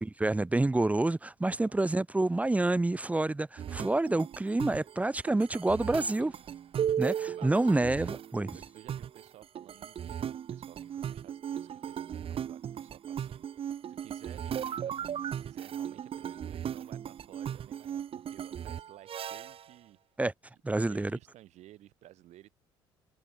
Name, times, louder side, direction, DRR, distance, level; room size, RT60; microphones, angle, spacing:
voice 1, 0.2-6.3 7.0-8.6 20.2-20.3 20.6-21.1, right 2 dB, 10° right, 0.4 m, -28 dB
voice 2, 1.5-1.8 6.2-6.5 7.3-7.8 8.5-20.0 20.7-22.6, right 14 dB, 70° right, 4.1 m, -55 dB
sound 1, 3.6-19.7, right 9 dB, 50° right, 0.9 m, -37 dB
hypercardioid pair, 60°, 12 cm